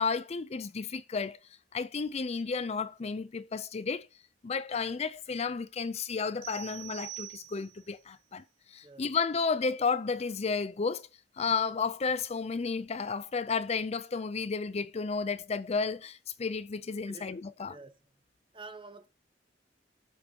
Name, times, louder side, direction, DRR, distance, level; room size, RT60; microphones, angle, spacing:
voice 1, 0.0-1.4 1.7-4.1 4.4-8.4 8.7-11.1 11.4-17.8, left 5 dB, 35° left, 0.5 m, -32 dB
sound 1, 6.4-7.9, right 16 dB, 55° right, 2.2 m, -44 dB
voice 2, 18.5-19.1, right 3 dB, 30° right, 1.0 m, -47 dB
18.0 x 6.5 x 2.8 m
head